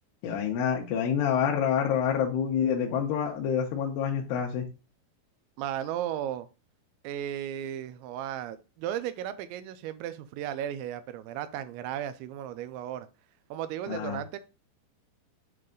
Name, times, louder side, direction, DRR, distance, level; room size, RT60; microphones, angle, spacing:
voice 1, 0.2-4.7 13.9-14.2, left 8 dB, 80° left, 2.7 m, -27 dB
voice 2, 5.6-6.5 7.0-13.1 13.5-14.4, right 11 dB, 85° right, 2.9 m, -35 dB
7.8 x 3.3 x 3.7 m
omnidirectional pair, 5.2 m